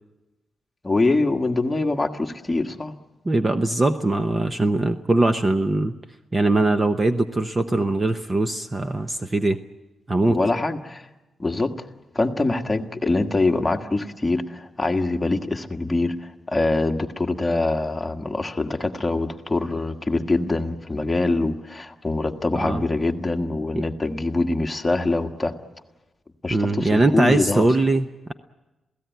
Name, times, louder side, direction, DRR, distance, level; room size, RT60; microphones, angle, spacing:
voice 1, 0.8-3.0 10.3-11.1 11.4-11.7 12.2-25.6 26.4-27.7, left 2 dB, 15° left, 3 dB, 1.6 m, -24 dB
voice 2, 3.2-5.9 6.3-9.6 10.1-10.4 22.6-22.8 23.8-23.9 26.5-28.3, right 2 dB, 20° right, 8 dB, 0.8 m, -21 dB
27.5 x 17.0 x 9.3 m, 1.1 s
wide cardioid pair, 135°, 0 cm